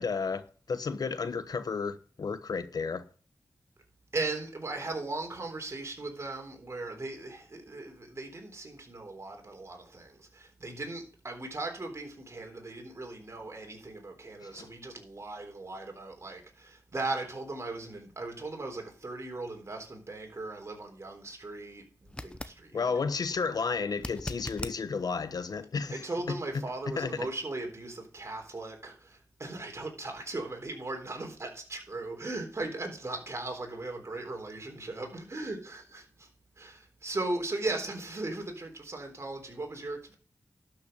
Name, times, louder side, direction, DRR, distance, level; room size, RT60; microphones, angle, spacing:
voice 1, 0.0-3.1 14.4-14.7 22.7-26.3 26.9-27.3, left 5 dB, 75° left, 1.0 m, -32 dB
voice 2, 4.1-22.9 25.9-36.3 36.6-40.2, right 2 dB, 45° right, 3.7 m, -38 dB
sound 1, 22.1-22.6 23.9-24.8 27.8-27.9, left 1 dB, 15° left, 0.9 m, -39 dB
12.0 x 6.0 x 6.7 m
cardioid pair, 60°, 7 cm